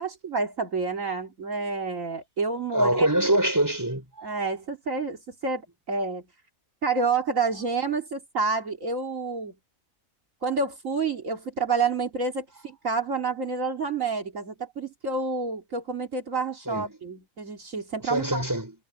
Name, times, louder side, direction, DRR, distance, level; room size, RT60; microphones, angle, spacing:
voice 1, 0.0-3.1 4.2-6.2 6.8-9.5 10.4-18.4, right 4 dB, 65° right, 2.8 m, -29 dB
voice 2, 2.7-4.3 16.7-16.9 18.1-18.7, right 1 dB, 15° right, 5.0 m, -24 dB
omnidirectional pair, 1.5 m